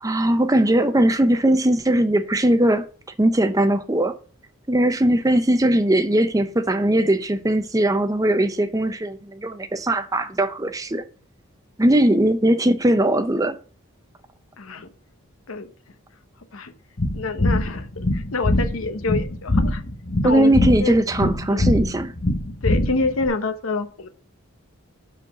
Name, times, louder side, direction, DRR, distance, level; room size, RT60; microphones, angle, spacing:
voice 1, 0.0-2.9 3.2-4.2 4.7-11.0 11.8-13.6 20.2-22.1, right 1 dB, 15° right, 0.5 m, -19 dB
voice 2, 14.6-14.9 15.5-15.7 16.5-16.7 17.1-17.9 18.1-19.8 20.2-21.0 21.5-21.7 22.6-24.1, left 3 dB, 75° left, 1.0 m, -27 dB
sound 1, 17.0-23.3, left 1 dB, 45° left, 1.3 m, -23 dB
5.6 x 5.2 x 6.2 m
head